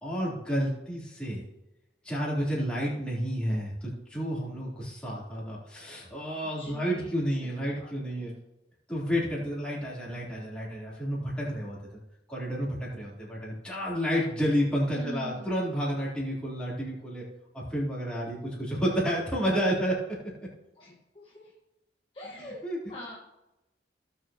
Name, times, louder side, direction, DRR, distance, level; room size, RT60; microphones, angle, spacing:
voice 1, 0.0-1.5 2.0-8.3 8.9-11.8 12.3-17.2 17.5-20.0 22.4-22.8, equal, 5° left, -7 dB, 3.6 m, -30 dB
voice 2, 6.6-8.3 14.9-15.5 20.8-21.5 22.1-22.6 22.9-23.2, equal, 30° left, -5 dB, 1.6 m, -44 dB
17.0 x 7.1 x 3.0 m, 0.94 s
head